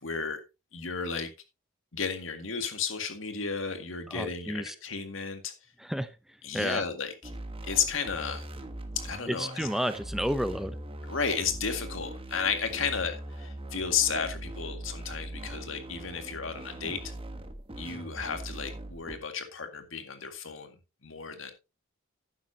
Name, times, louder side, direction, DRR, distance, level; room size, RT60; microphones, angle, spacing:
voice 1, 0.0-0.4 0.7-1.3 1.9-5.5 6.4-7.1 7.6-8.4 9.0-9.7 11.1-17.1 17.8-21.5, left 6 dB, 80° left, 7 dB, 2.0 m, -33 dB
voice 2, 4.1-4.7 5.8-6.8 9.3-10.8, equal, ahead, 12 dB, 0.6 m, -31 dB
sound 1, 7.2-19.2, right 1 dB, 30° right, 1.2 m, -41 dB
11.5 x 9.7 x 2.8 m, 0.26 s
head